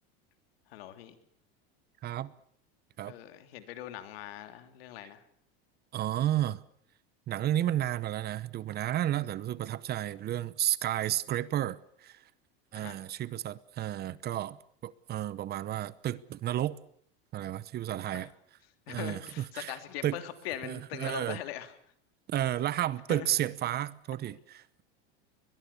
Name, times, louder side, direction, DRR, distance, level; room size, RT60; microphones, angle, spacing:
voice 1, 0.7-1.2 3.0-5.2 12.7-13.0 18.1-18.3 18.9-21.7 23.1-23.3, left 12 dB, 85° left, 3.0 m, -41 dB
voice 2, 2.0-2.3 3.0-3.1 5.9-6.6 7.3-12.2 12.7-14.6 14.8-16.8 17.3-18.3 18.9-19.2 19.5-19.7 20.0-20.2 20.6-21.4 22.3-24.8, right 12 dB, 35° right, 0.9 m, -32 dB
22.5 x 21.5 x 7.0 m
supercardioid pair, 140°, 29 cm